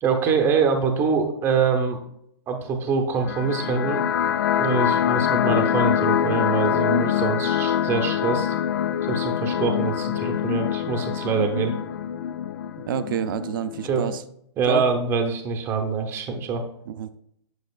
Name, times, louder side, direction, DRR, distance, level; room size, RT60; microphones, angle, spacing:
voice 1, 0.0-2.0 2.5-4.1 4.6-8.5 9.0-11.7 13.8-14.1 14.6-16.6, right 5 dB, 15° right, 3 dB, 0.9 m, -24 dB
sound 1, 3.2-14.2, left 9 dB, 45° left, 0.4 m, -24 dB
voice 2, 12.9-14.2 14.7-14.8 16.9-17.1, right 9 dB, 45° right, 12 dB, 0.5 m, -28 dB
9.0 x 6.3 x 2.4 m, 0.73 s
hypercardioid pair, 150°, 15 cm